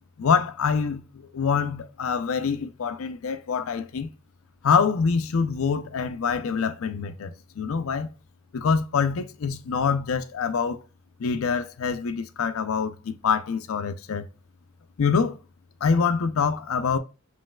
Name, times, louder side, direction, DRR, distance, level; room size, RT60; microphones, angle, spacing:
voice 1, 0.2-4.1 4.6-8.1 8.5-10.8 11.2-14.3 15.0-15.4 15.8-17.0, left 5 dB, 80° left, 0.5 m, -25 dB
5.2 x 3.2 x 2.2 m
head